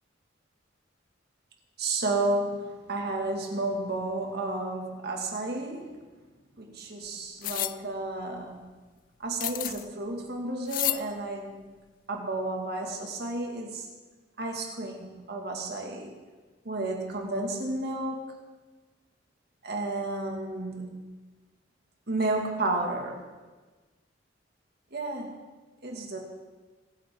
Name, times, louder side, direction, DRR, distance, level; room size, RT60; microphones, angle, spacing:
voice 1, 1.8-6.0 6.6-8.7 9.2-11.7 12.1-13.9 14.4-16.1 16.7-18.3 19.6-21.0 22.1-23.3 24.9-25.4 25.8-26.2, right 2 dB, 60° right, 1 dB, 2.1 m, -32 dB
sound 1, 7.4-7.8 9.4-9.9 10.7-11.0, left 15 dB, 45° left, 0.3 m, -30 dB
22.0 x 9.4 x 3.8 m, 1.3 s
head